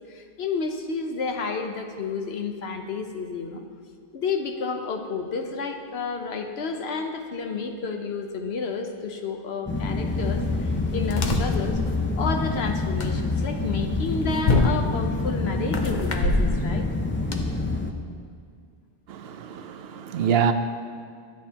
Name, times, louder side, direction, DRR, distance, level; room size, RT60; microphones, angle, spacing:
voice 1, 0.1-3.6 4.1-11.8 12.2-16.9, left 4 dB, 85° left, 1.1 m, -30 dB
sound 1, 9.7-17.9, left 3 dB, 20° left, 0.3 m, -27 dB
sound 2, 10.1-17.4, left 2 dB, 50° left, 0.8 m, -28 dB
voice 2, 19.1-20.5, right 7 dB, 75° right, 0.8 m, -25 dB
12.0 x 8.9 x 2.9 m
omnidirectional pair, 1.0 m